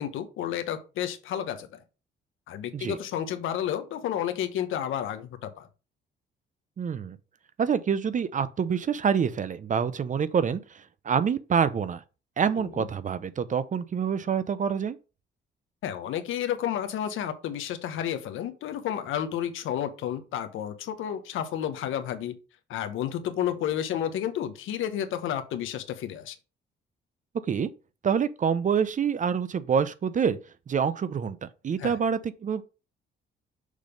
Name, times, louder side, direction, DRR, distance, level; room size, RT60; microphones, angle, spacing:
voice 1, 0.0-1.8 2.5-5.7 12.6-12.9 15.8-22.3 22.7-26.3 31.8-32.0, left 10 dB, 85° left, 1.0 m, -31 dB
voice 2, 6.8-7.2 7.6-12.0 12.4-15.0 27.5-27.7 28.0-30.4 30.7-32.6, right 7 dB, 40° right, 0.6 m, -26 dB
6.5 x 3.4 x 5.1 m
cardioid pair, 90°, 20 cm